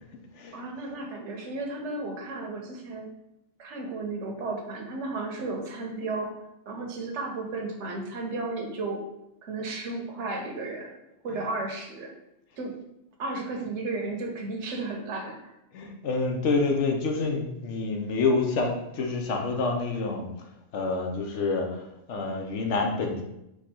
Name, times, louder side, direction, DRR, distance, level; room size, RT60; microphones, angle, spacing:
voice 1, 0.5-3.1 3.6-6.4 6.7-9.0 9.4-10.9 11.2-12.1 12.6-12.8 13.2-15.5, right 3 dB, 85° right, 2 dB, 1.1 m, -34 dB
voice 2, 15.7-20.3 20.7-23.2, left 3 dB, 85° left, 3 dB, 1.0 m, -28 dB
4.6 x 2.4 x 4.3 m, 0.86 s
omnidirectional pair, 1.2 m